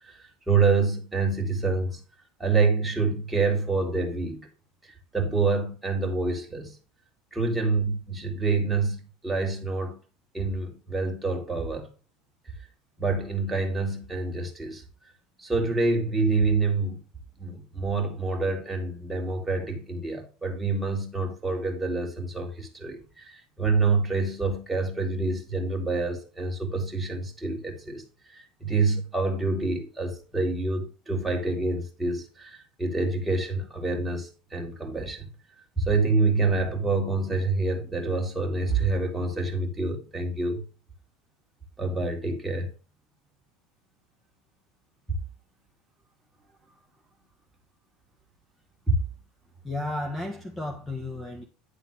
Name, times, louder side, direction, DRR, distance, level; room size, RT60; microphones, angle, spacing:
voice 1, 0.0-2.0 2.4-4.5 4.8-6.8 7.3-10.0 10.3-11.9 13.0-14.8 15.4-17.0 17.4-28.0 28.3-35.3 35.8-40.6 41.8-42.7 48.9-49.0, right 3 dB, 10° right, 2.3 m, -27 dB
voice 2, 49.6-51.4, left 2 dB, 10° left, 1.5 m, -33 dB
10.5 x 3.8 x 6.2 m
supercardioid pair, 120°, 0 cm